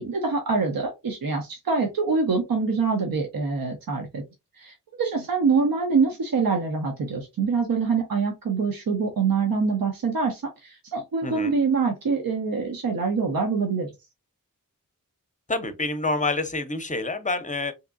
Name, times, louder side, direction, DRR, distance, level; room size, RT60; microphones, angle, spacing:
voice 1, 0.0-4.2 4.6-13.9, right 4 dB, 80° right, 0.8 m, -25 dB
voice 2, 11.2-11.5 15.5-17.7, left 2 dB, 20° left, 0.6 m, -27 dB
3.5 x 2.9 x 2.4 m
wide cardioid pair, 100°, 34 cm